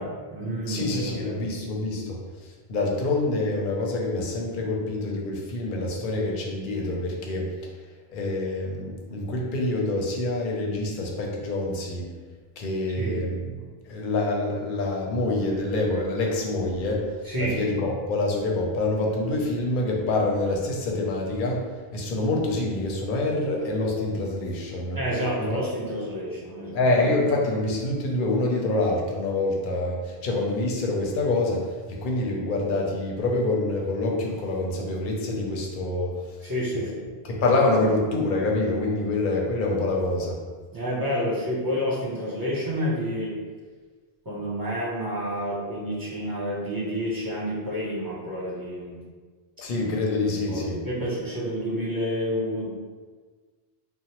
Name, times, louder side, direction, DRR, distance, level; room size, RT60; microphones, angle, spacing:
voice 1, 0.0-1.4 13.0-13.2 17.2-17.6 24.9-26.8 36.4-37.1 40.7-43.3 44.2-49.0 50.5-52.7, equal, 25° right, -7 dB, 0.6 m, -29 dB
voice 2, 0.7-7.5 8.1-12.1 12.6-13.5 13.8-21.6 21.9-25.0 25.4-25.6 26.7-36.8 37.2-40.4 49.6-50.8, left 2 dB, 60° left, -1 dB, 0.6 m, -26 dB
2.9 x 2.0 x 2.8 m, 1.5 s
omnidirectional pair, 1.0 m